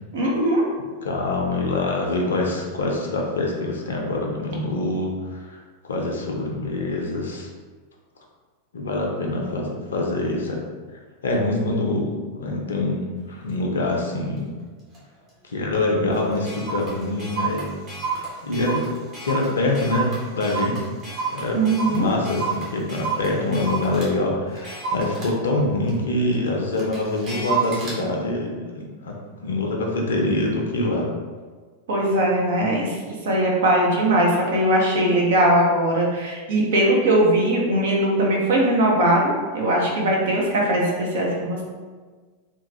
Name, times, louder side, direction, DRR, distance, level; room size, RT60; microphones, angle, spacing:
voice 1, 0.1-0.6 21.5-22.1 31.9-33.0 33.2-41.6, right 1 dB, 60° right, -2 dB, 0.7 m, -20 dB
voice 2, 1.0-7.5 8.7-10.6 11.2-14.5 15.4-17.7 18.4-18.8 19.2-20.9 21.3-29.2 29.4-31.1, left 2 dB, 65° left, 0 dB, 0.5 m, -25 dB
Clock, 13.5-13.6 14.1-14.4 14.9-15.0 15.3-15.4 15.7-15.8 16.1-24.1 24.5-28.0, right 5 dB, 30° right, 1.0 m, -31 dB
3.0 x 2.3 x 2.8 m, 1.4 s
figure-of-eight pair, 90°, 0 cm